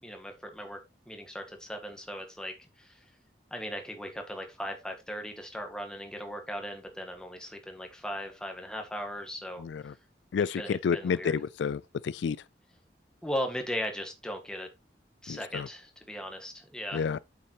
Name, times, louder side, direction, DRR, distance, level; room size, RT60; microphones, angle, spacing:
voice 1, 0.0-0.8 1.1-3.0 3.5-10.0 10.6-11.3 13.2-14.7 15.2-17.1, equal, 5° left, 1.8 m, -38 dB
voice 2, 9.6-9.9 10.3-12.4 15.3-15.7 16.9-17.2, left 6 dB, 80° left, 0.4 m, -30 dB
8.6 x 7.5 x 3.0 m
head